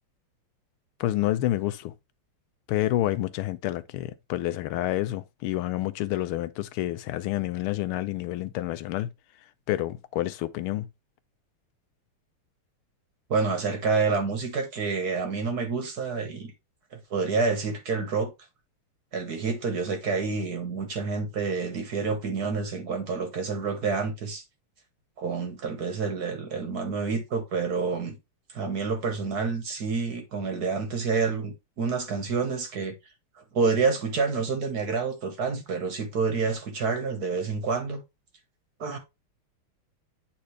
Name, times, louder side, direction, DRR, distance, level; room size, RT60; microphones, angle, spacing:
voice 1, 1.0-1.9 2.7-9.1 9.7-10.9, left 14 dB, 85° left, 1.5 m, -28 dB
voice 2, 13.3-16.5 16.9-18.3 19.1-24.4 25.2-28.2 28.5-33.0 33.4-38.0 38.8-39.0, right 4 dB, 50° right, 1.7 m, -28 dB
8.6 x 4.3 x 3.2 m
omnidirectional pair, 2.4 m